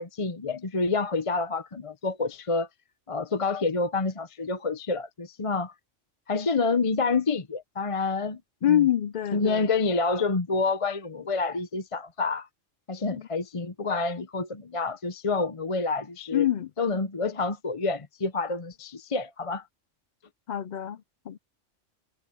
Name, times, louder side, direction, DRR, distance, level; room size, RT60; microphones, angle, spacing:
voice 1, 0.0-2.7 3.1-5.7 6.3-8.4 8.7-8.8 9.3-12.5 12.9-16.5 16.8-19.6, left 3 dB, 30° left, 0.8 m, -28 dB
voice 2, 8.6-9.7 13.1-13.3 16.3-16.7 20.5-21.4, left 11 dB, 60° left, 0.4 m, -26 dB
omnidirectional pair, 1.3 m